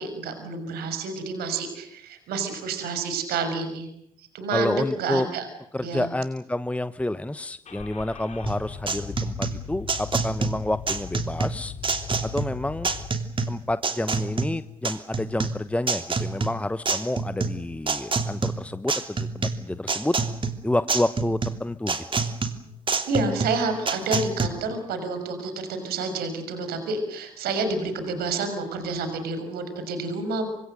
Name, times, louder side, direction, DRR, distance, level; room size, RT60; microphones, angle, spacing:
voice 1, 0.0-3.9 4.3-5.5 5.8-6.1 23.1-30.5, right 3 dB, 60° right, 8 dB, 6.2 m, -29 dB
voice 2, 4.5-5.3 5.7-11.7 12.2-12.9 13.5-20.1 20.6-22.0, left 1 dB, 5° left, 13 dB, 1.1 m, -29 dB
Car / Engine starting, 7.6-13.1, left 6 dB, 40° left, 3.9 m, -39 dB
sound 1, 8.5-24.5, right 4 dB, 30° right, 2.9 m, -28 dB
28.5 x 25.5 x 6.7 m, 0.73 s
hypercardioid pair, 50°, 18 cm